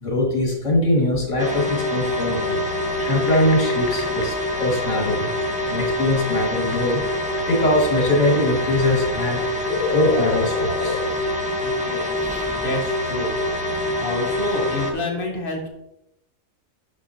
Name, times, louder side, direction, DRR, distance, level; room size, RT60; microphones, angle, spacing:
voice 1, 0.0-2.6 3.1-5.3 5.7-7.0 7.5-9.5 9.9-11.0, left 1 dB, 55° left, -1 dB, 2.4 m, -22 dB
sound 1, 1.4-14.9, left 1 dB, 5° right, 0.9 m, -25 dB
sound 2, 3.0-11.2, left 5 dB, 90° left, 1.3 m, -33 dB
voice 2, 11.6-13.4 14.0-15.7, left 2 dB, 40° left, -1 dB, 1.8 m, -29 dB
9.8 x 6.5 x 2.8 m, 0.86 s
omnidirectional pair, 1.5 m